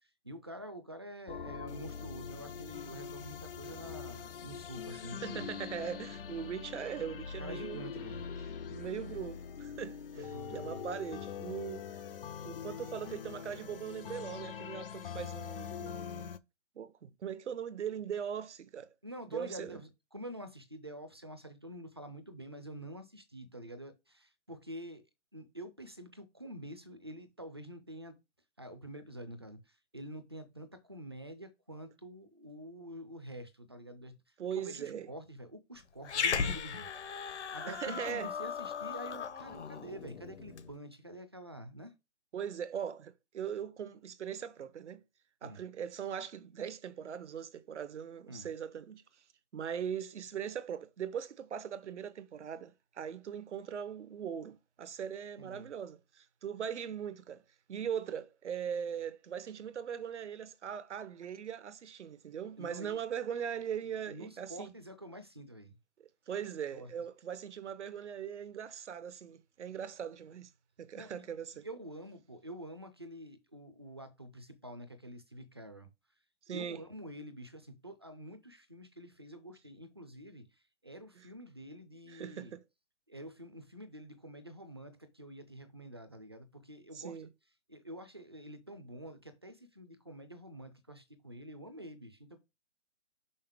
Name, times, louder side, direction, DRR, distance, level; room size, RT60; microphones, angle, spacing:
voice 1, 0.2-5.5 7.4-8.2 10.1-10.8 19.0-25.0 25.3-28.2 28.6-34.2 34.5-36.9 37.5-41.9 45.4-45.6 48.3-48.5 55.4-55.7 62.6-63.0 64.1-65.8 66.7-66.9 70.9-71.3 71.6-75.9 76.5-80.5 80.8-82.5 83.1-87.3 87.7-92.4, right 1 dB, 20° right, 0.4 m, -47 dB
sound 1, 1.3-16.4, left 7 dB, 50° left, 0.5 m, -43 dB
voice 2, 4.9-8.1 8.7-12.0 12.4-16.3 16.8-18.9 19.3-19.8 34.4-35.1 37.7-38.3 42.3-45.0 45.4-49.0 49.5-57.4 57.7-64.7 66.0-70.5 70.8-71.7 76.5-76.8 81.2-81.3 82.1-82.6 86.9-87.3, right 8 dB, 70° right, 0.8 m, -40 dB
Growling, 36.0-40.7, left 6 dB, 65° left, 0.9 m, -37 dB
5.5 x 5.5 x 3.5 m
hypercardioid pair, 165°, 36 cm